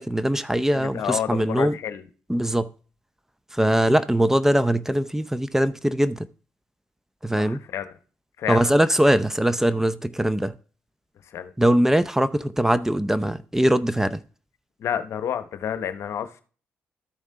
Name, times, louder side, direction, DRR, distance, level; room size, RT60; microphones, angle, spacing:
voice 1, 0.0-1.8 2.3-2.7 3.5-6.3 7.2-7.6 8.5-10.5 11.6-14.2, right 1 dB, 10° right, 0.6 m, -21 dB
voice 2, 0.7-2.1 7.4-7.9 8.4-8.7 11.3-11.5 14.8-16.4, left 9 dB, 65° left, 0.9 m, -29 dB
13.0 x 5.3 x 3.8 m
supercardioid pair, 50°, 5 cm